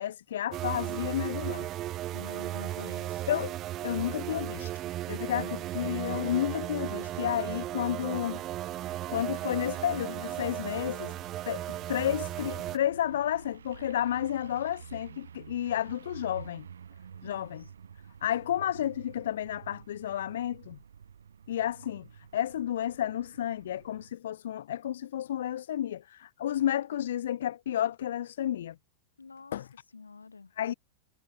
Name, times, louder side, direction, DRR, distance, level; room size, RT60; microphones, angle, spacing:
voice 1, 0.0-1.7 3.3-3.5 3.8-8.4 9.1-11.1 11.5-16.6 17.2-17.6 18.2-20.8 21.5-28.8 29.5-29.7 30.6-30.7, left 11 dB, 60° left, 1.4 m, -31 dB
sound 1, 0.5-12.8, right 14 dB, 35° right, 0.7 m, -35 dB
voice 2, 2.1-3.4 5.2-5.6 17.2-17.5 29.2-29.6 29.9-30.5, left 4 dB, 75° left, 5.3 m, -47 dB
sound 2, 5.1-24.1, right 7 dB, 70° right, 2.2 m, -51 dB
figure-of-eight pair, 90°, 0 cm